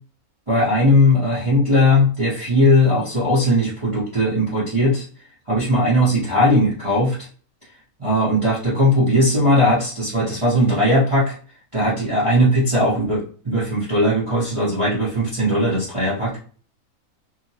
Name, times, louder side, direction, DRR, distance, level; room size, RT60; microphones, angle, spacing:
voice 1, 0.5-5.0 5.5-7.2 8.0-11.4 11.7-16.4, left 1 dB, 25° right, -8 dB, 0.8 m, -18 dB
2.8 x 2.1 x 2.7 m, 0.41 s
omnidirectional pair, 1.5 m